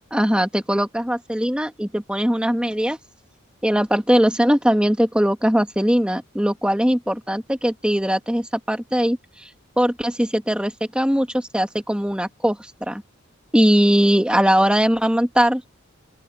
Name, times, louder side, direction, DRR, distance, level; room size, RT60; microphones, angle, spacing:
voice 1, 0.1-3.0 3.6-9.5 9.8-13.0 13.5-15.8, equal, 5° right, 1.8 m, -20 dB
open air
head